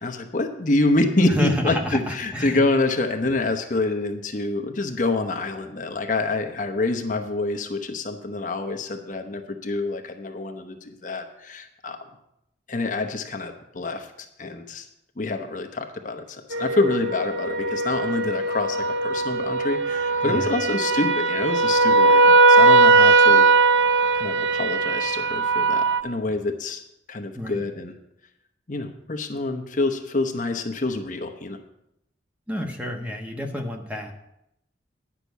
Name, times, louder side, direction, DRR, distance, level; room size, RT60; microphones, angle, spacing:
voice 1, 0.0-12.1 12.7-14.9 15.2-23.4 24.1-26.8 27.1-27.9 28.7-31.6, left 2 dB, 45° left, 5 dB, 0.9 m, -26 dB
voice 2, 1.3-2.6 20.2-20.5 27.3-27.6 32.5-34.1, left 1 dB, 10° right, 2 dB, 1.2 m, -29 dB
sound 1, 16.5-26.0, right 3 dB, 75° right, 0.6 m, -19 dB
10.0 x 5.9 x 8.1 m, 0.82 s
head